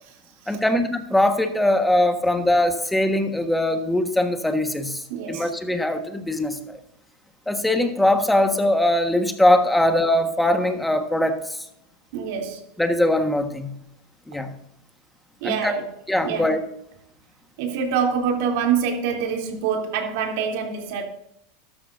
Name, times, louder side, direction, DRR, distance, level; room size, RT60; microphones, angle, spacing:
voice 1, 0.5-6.8 7.5-11.6 12.8-13.7 14.3-14.5 15.4-15.7 16.1-16.6, left 1 dB, 5° left, 1.4 m, -21 dB
voice 2, 5.1-5.5 12.1-12.6 15.4-15.8 16.2-16.5 17.6-21.0, right 7 dB, 65° right, 3.1 m, -25 dB
13.5 x 12.5 x 2.6 m
supercardioid pair, 130°, 0 cm